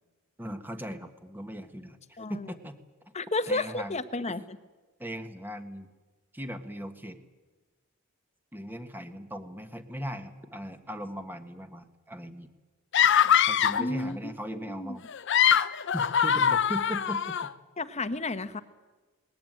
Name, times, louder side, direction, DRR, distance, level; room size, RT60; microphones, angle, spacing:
voice 1, 0.4-2.0 2.3-2.8 3.5-3.9 5.0-5.9 6.3-7.2 8.5-12.5 13.5-15.0 15.9-17.5, equal, 10° right, 7 dB, 1.5 m, -38 dB
voice 2, 2.2-2.5 3.1-4.4 13.8-15.0 17.8-18.6, left 2 dB, 30° left, 11 dB, 1.1 m, -32 dB
sound 1, 12.9-13.9 15.1-17.5, left 8 dB, 60° left, 0.7 m, -23 dB
20.0 x 19.5 x 9.2 m, 1.3 s
head